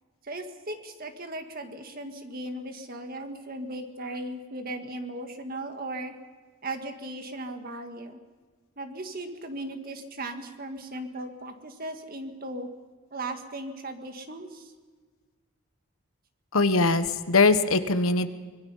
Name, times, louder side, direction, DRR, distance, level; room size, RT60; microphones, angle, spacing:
voice 1, 0.2-6.1 6.6-8.2 8.8-12.7 13.1-14.7, right 1 dB, 45° right, 6 dB, 1.9 m, -37 dB
voice 2, 16.5-18.3, left 3 dB, 75° left, 10 dB, 1.2 m, -21 dB
25.0 x 22.0 x 5.6 m, 1.4 s
head